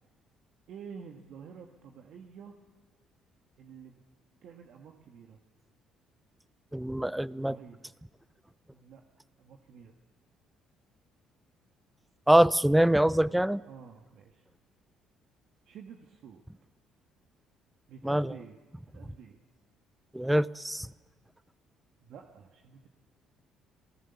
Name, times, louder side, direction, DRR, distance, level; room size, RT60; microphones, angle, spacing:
voice 1, 0.7-2.6 3.6-4.0 4.4-5.4 7.4-7.8 8.7-9.0 9.4-10.0 13.7-14.5 15.7-16.4 17.9-18.6 18.8-19.4 22.0-22.9, right 7 dB, 65° right, 1.7 m, -49 dB
voice 2, 6.7-7.6 12.3-13.6 18.0-18.3 20.1-20.9, right 1 dB, 5° right, 0.7 m, -24 dB
28.0 x 19.0 x 7.0 m
supercardioid pair, 70°, 0 cm